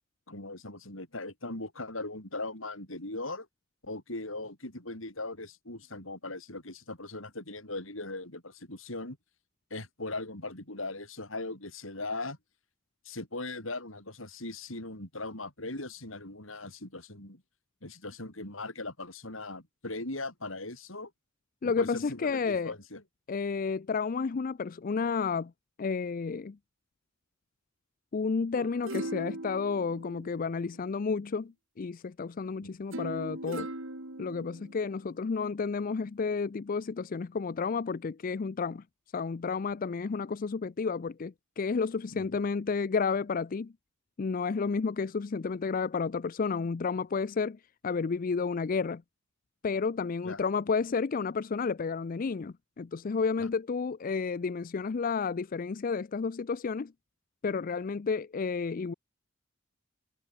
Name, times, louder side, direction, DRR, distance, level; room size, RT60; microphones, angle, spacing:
voice 1, 0.3-3.5 3.8-9.2 9.7-12.4 13.0-17.4 17.8-21.1 21.6-23.0 32.6-32.8 42.1-42.4 50.2-50.4 53.4-53.5, left 2 dB, 80° left, 7.6 m, -39 dB
voice 2, 21.6-22.7 23.3-25.5 25.8-26.6 28.1-33.7 34.2-38.8 39.1-43.7 44.2-49.0 49.6-56.9 57.4-58.9, left 5 dB, 45° left, 0.4 m, -31 dB
sound 1, 28.6-30.9 32.9-34.9 35.5-35.6, right 1 dB, 75° right, 3.0 m, -40 dB
head